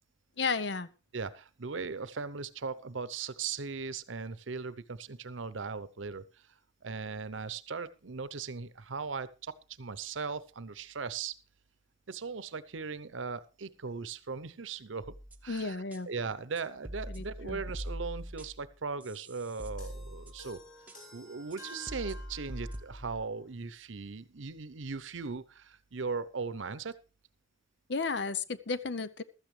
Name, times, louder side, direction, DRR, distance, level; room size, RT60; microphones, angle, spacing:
voice 1, 0.4-0.9 15.5-16.1 17.1-17.6 27.9-29.2, left 4 dB, 65° left, 14 dB, 0.7 m, -33 dB
voice 2, 1.1-6.4 6.8-11.3 12.1-15.1 15.4-20.6 21.1-26.9, right 5 dB, 85° right, 15 dB, 0.8 m, -38 dB
sound 1, 15.0-15.5 15.9-16.0 16.6-18.7 19.0-20.6 20.9-21.0 21.5-21.6 21.9-23.2, equal, 10° right, 0.9 m, -42 dB
sound 2, 19.8-23.0, equal, 45° left, 6.0 m, -51 dB
15.0 x 13.0 x 3.3 m, 0.30 s
head